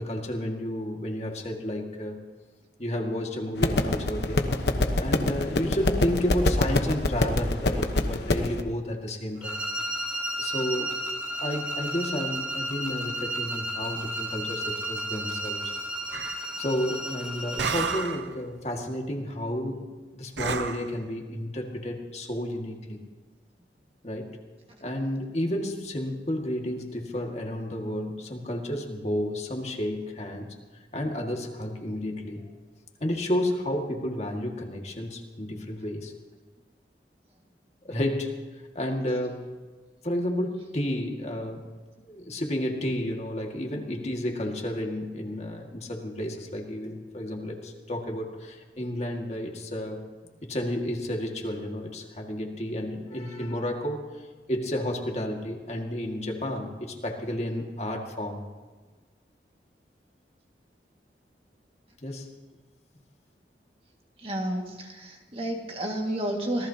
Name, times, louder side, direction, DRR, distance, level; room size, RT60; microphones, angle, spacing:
voice 1, 0.0-2.2 2.8-4.4 5.0-9.6 10.4-11.0 11.4-15.7 16.6-19.8 20.1-23.0 24.0-24.3 24.8-30.5 30.9-32.4 33.0-36.1 37.8-38.4 38.8-39.5 40.0-41.7 42.0-50.0 50.4-54.0 54.5-58.4 62.0-62.3, left 1 dB, 40° left, 1 dB, 2.0 m, -31 dB
sound 1, 3.6-8.6, left 2 dB, 70° left, 1.1 m, -25 dB
sound 2, 9.4-18.1, right 1 dB, 5° right, 2.0 m, -33 dB
sound 3, 16.1-16.5 17.6-18.3 20.4-20.9, right 6 dB, 80° right, 0.7 m, -31 dB
voice 2, 64.2-66.7, right 1 dB, 30° right, 1 dB, 2.0 m, -31 dB
26.0 x 18.5 x 2.9 m, 1.3 s
head